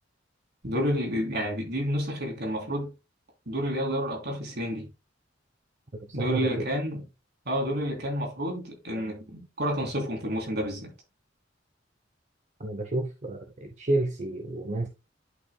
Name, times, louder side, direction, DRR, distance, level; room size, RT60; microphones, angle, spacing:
voice 1, 0.6-2.9 3.5-4.9 6.1-7.0 7.4-10.9, equal, 60° right, 3.3 m, -30 dB
voice 2, 6.1-6.7 9.0-9.1 12.6-14.9, right 2 dB, 40° right, 0.9 m, -30 dB
11.0 x 5.8 x 2.2 m
head